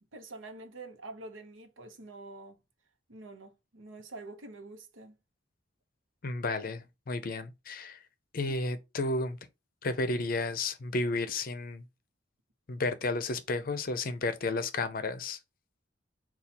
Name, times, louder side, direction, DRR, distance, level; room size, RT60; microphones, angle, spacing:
voice 1, 0.1-2.6 3.1-5.2 8.5-8.6, right 2 dB, 85° right, 0.9 m, -46 dB
voice 2, 6.2-8.0 8.3-9.4 9.8-11.8 12.7-15.4, left 2 dB, 50° left, 0.5 m, -32 dB
4.1 x 2.4 x 4.2 m
head